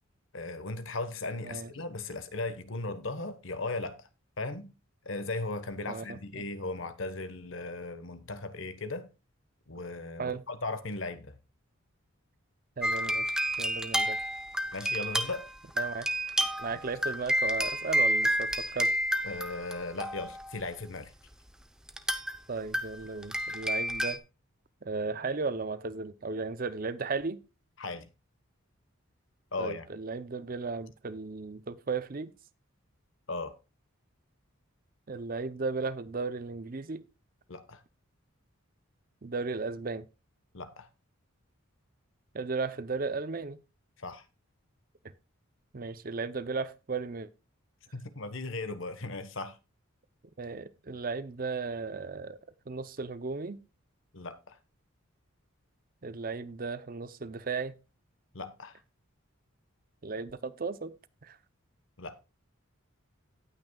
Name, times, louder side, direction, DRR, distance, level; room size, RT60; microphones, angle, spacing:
voice 1, 0.3-4.1 4.4-4.7 5.0-9.1 9.7-11.4 14.7-15.5 19.2-21.1 27.8-28.1 29.5-29.9 33.3-33.5 37.5-37.8 40.5-40.9 44.0-44.2 47.9-49.6 54.1-54.6 58.3-58.8 62.0-62.2, left 3 dB, 65° left, 1.2 m, -37 dB
voice 2, 5.9-6.5 10.2-10.4 12.8-14.2 15.8-16.1 16.4-18.9 22.5-24.2 24.8-27.4 29.6-32.3 35.1-37.0 39.2-40.1 42.3-43.6 45.7-47.3 50.4-52.4 52.7-53.6 56.0-57.7 60.0-60.9 61.2-61.4, right 4 dB, 40° right, 0.6 m, -35 dB
sound 1, 12.8-20.5 21.9-22.4 22.7-24.2, equal, 5° right, 0.6 m, -30 dB
17.5 x 6.1 x 2.3 m
head